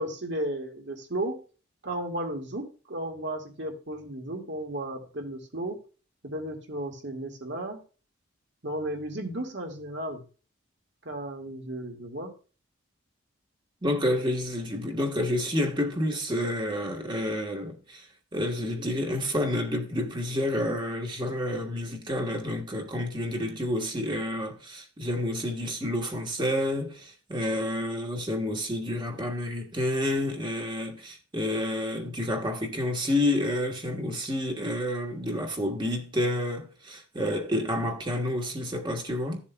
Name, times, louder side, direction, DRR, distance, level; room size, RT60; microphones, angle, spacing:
voice 1, 0.0-1.4 1.8-5.8 6.2-7.8 8.6-10.2 11.0-12.3, right 1 dB, 60° right, 2.1 m, -34 dB
voice 2, 13.8-18.1 18.3-39.4, left 1 dB, 25° right, 1.3 m, -29 dB
14.0 x 7.2 x 2.3 m
head